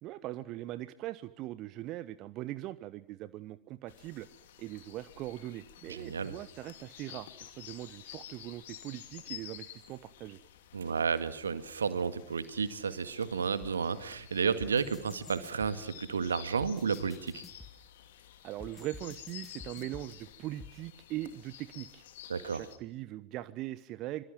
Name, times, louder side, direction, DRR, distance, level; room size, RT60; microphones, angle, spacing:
voice 1, 0.0-10.4 18.4-22.0 22.5-24.2, right 15 dB, 35° right, 16 dB, 1.0 m, -41 dB
sound 1, 3.9-22.8, left 11 dB, 55° left, 2.7 m, -51 dB
voice 2, 5.9-6.3 10.7-17.4 22.3-22.6, right 6 dB, 70° right, 12 dB, 2.0 m, -32 dB
sound 2, 13.6-13.7 14.6-15.7 16.6-17.7 18.6-20.1 20.6-20.7, left 5 dB, 10° left, 2.1 m, -49 dB
26.0 x 24.5 x 7.5 m, 0.67 s
figure-of-eight pair, 90°, 0 cm